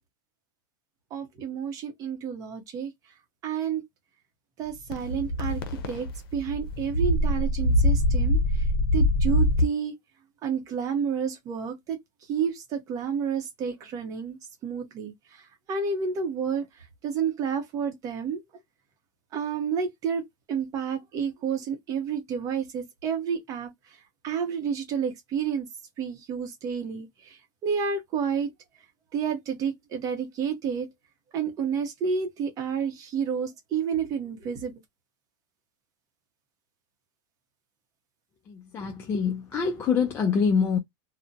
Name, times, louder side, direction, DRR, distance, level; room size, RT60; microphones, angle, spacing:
voice 1, 1.1-2.9 3.4-3.8 4.6-8.4 8.9-9.9 10.4-12.0 12.3-15.1 15.7-16.6 17.0-18.4 19.3-20.2 20.5-23.7 24.2-25.7 26.0-27.1 27.6-28.5 29.1-30.9 31.3-34.7, right 7 dB, 30° right, 0.8 m, -30 dB
sound 1, 4.9-9.6, left 1 dB, 85° left, 0.6 m, -24 dB
voice 2, 38.5-40.8, left 6 dB, 20° left, 0.3 m, -25 dB
2.4 x 2.1 x 2.6 m
supercardioid pair, 155°, 12 cm